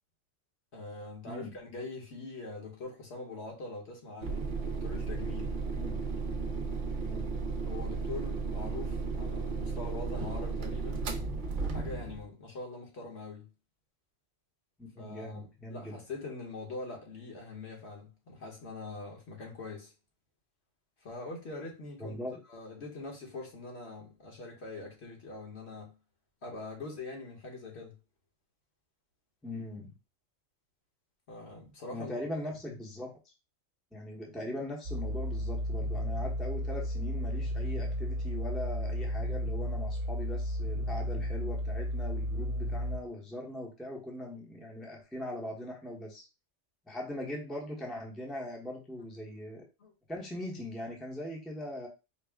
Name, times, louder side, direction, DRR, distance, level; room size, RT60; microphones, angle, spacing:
voice 1, 0.7-5.6 7.7-11.1 11.7-13.5 15.0-19.9 21.0-22.2 22.5-26.0 26.4-28.0 31.3-32.1 32.7-32.8 49.8-49.9, left 3 dB, 60° left, 1.4 m, -43 dB
voice 2, 1.3-1.6 5.7-6.0 7.0-7.3 14.8-16.0 22.0-22.4 29.4-29.9 31.9-33.3 33.9-46.3 46.9-49.6 50.1-51.9, left 1 dB, ahead, 0.7 m, -40 dB
sound 1, 4.2-12.3, right 4 dB, 50° right, 0.6 m, -34 dB
sound 2, 34.8-43.0, equal, 75° right, 0.9 m, -33 dB
4.7 x 2.1 x 3.5 m
omnidirectional pair, 1.3 m